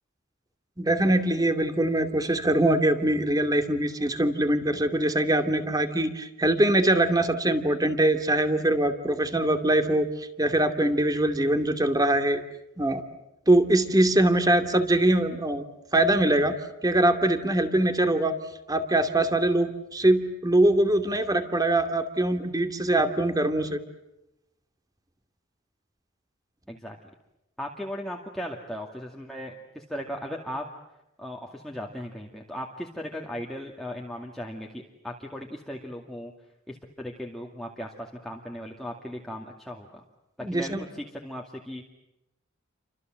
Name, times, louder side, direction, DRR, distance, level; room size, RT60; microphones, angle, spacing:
voice 1, 0.8-12.4 12.8-13.0 13.5-15.6 15.9-16.6 16.8-18.3 18.7-23.8 40.4-40.9, right 1 dB, 20° right, 7 dB, 2.5 m, -23 dB
voice 2, 27.6-30.7 31.2-36.3 36.7-40.0 40.5-41.8, equal, ahead, -1 dB, 2.3 m, -37 dB
30.0 x 25.5 x 7.7 m, 0.89 s
head